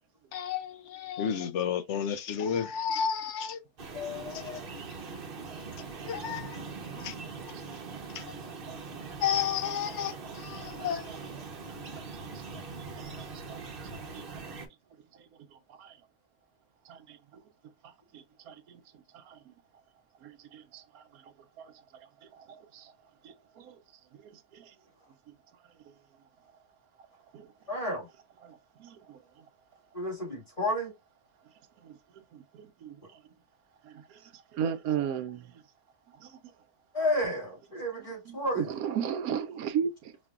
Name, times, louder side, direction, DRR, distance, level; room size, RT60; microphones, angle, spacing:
voice 1, 0.3-3.6 3.9-4.6 6.0-6.6 7.0-7.1 8.1-8.2 9.2-11.1, left 8 dB, 65° left, 0.7 m, -32 dB
sound 1, 3.8-14.7, right 4 dB, 45° right, 0.8 m, -42 dB
voice 2, 6.9-7.6 7.9-8.0 8.3-8.4 8.7-8.8 9.1-9.2 9.9-10.3 10.6-11.3 11.7-13.6 13.9-14.5 15.1-16.0 16.8-17.4 17.8-19.5 20.2-22.9 23.2-23.8 24.1-24.7 25.3-25.4 25.8-25.9 27.0-27.1 27.3-27.5 28.4-29.4 31.8-33.2 33.8-35.6 36.1-36.5 38.0-40.1, right 8 dB, 75° right, 1.1 m, -39 dB
voice 3, 27.7-28.1 29.9-30.9 36.9-38.7, left 1 dB, 20° left, 2.0 m, -31 dB
5.1 x 2.6 x 2.4 m
omnidirectional pair, 1.6 m